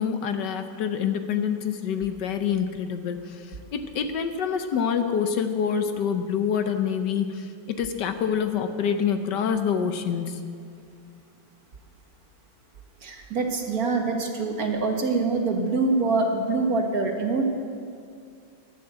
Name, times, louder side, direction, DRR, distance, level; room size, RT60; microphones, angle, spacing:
voice 1, 0.0-3.4 3.7-10.4, left 7 dB, 70° left, 7 dB, 1.4 m, -26 dB
voice 2, 13.0-17.4, right 3 dB, 55° right, 2 dB, 1.7 m, -25 dB
11.5 x 11.0 x 7.9 m, 2.3 s
omnidirectional pair, 2.0 m